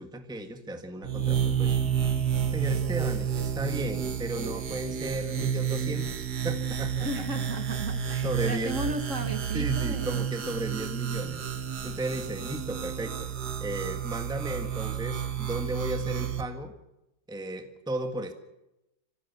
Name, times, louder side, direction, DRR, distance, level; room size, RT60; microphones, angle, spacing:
voice 1, 0.0-1.7 2.5-7.1 8.2-8.8 9.5-11.4 11.8-13.3 13.6-16.7 17.3-18.3, right 1 dB, ahead, 6 dB, 1.5 m, -35 dB
sound 1, 1.0-16.4, right 8 dB, 65° right, 1.9 m, -30 dB
voice 2, 7.0-10.3, right 1 dB, 45° right, 7 dB, 2.1 m, -35 dB
27.0 x 15.5 x 7.1 m, 0.92 s
omnidirectional pair, 1.9 m